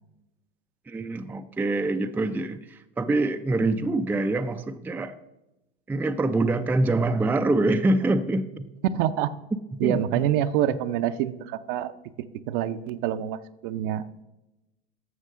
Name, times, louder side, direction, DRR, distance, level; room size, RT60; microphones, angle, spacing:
voice 1, 0.9-5.1 5.9-8.7 9.7-10.2, right 2 dB, 5° right, 8 dB, 0.4 m, -25 dB
voice 2, 8.9-9.3 9.8-11.9 12.5-14.0, right 11 dB, 55° right, 11 dB, 0.7 m, -26 dB
12.5 x 7.4 x 3.6 m, 0.96 s
hypercardioid pair, 85°, 31 cm